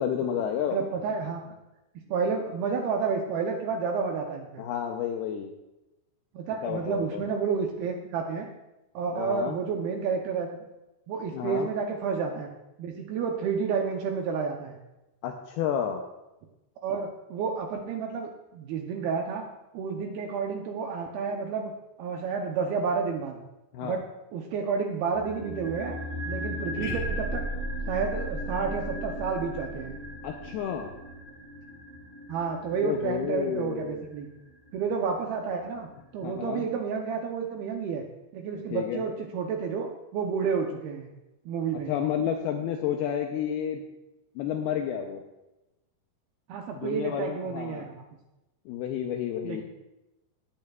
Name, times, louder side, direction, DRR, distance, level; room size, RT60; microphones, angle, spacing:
voice 1, 0.0-0.8 4.6-5.5 6.6-7.2 9.1-9.6 11.3-11.7 15.2-16.0 23.7-24.0 30.2-30.9 32.8-34.0 36.2-36.6 38.7-39.0 41.9-43.8 44.4-45.2 46.7-47.9 48.7-49.6, left 9 dB, 90° left, 3 dB, 2.2 m, -30 dB
voice 2, 0.7-1.6 2.1-4.6 6.3-8.5 8.9-10.6 11.1-12.5 12.8-14.8 16.8-19.5 19.7-21.7 22.0-23.4 23.8-26.0 26.3-27.4 27.9-30.0 32.3-34.3 34.7-35.9 36.1-38.0 38.3-41.1 41.5-41.9 46.5-48.0 49.4-49.6, right 5 dB, 80° right, 2 dB, 2.2 m, -30 dB
sound 1, 25.1-35.4 35.6-35.7, left 1 dB, 35° right, 1.2 m, -39 dB
sound 2, 26.7-30.9, right 1 dB, 45° left, 3.0 m, -35 dB
18.5 x 8.8 x 2.3 m, 0.98 s
omnidirectional pair, 5.3 m